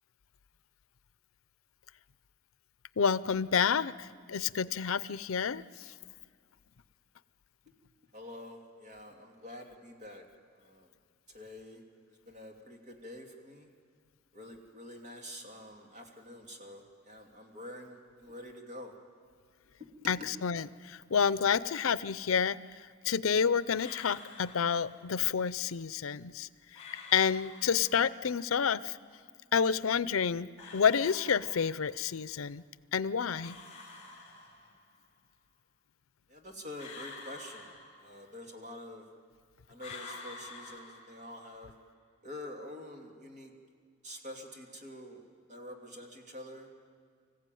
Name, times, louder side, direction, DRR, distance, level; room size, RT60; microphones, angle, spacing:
voice 1, 3.0-5.6 20.1-22.6 23.0-26.5 27.1-29.0 29.5-32.6 32.9-33.6, left 7 dB, 85° left, 17 dB, 0.6 m, -29 dB
voice 2, 8.1-10.2 10.6-10.9 11.3-11.8 12.3-13.7 14.3-18.9 20.0-20.3 36.3-37.7 38.0-39.0 39.7-41.7 42.2-43.5 44.0-45.2 45.5-46.8, left 1 dB, 35° right, 2 dB, 2.9 m, -47 dB
sound 1, 23.7-25.2 26.7-28.2 30.6-32.1 33.4-35.0 36.8-38.5 39.8-41.6, left 3 dB, 35° left, 4.1 m, -49 dB
25.5 x 15.5 x 9.2 m, 2.1 s
head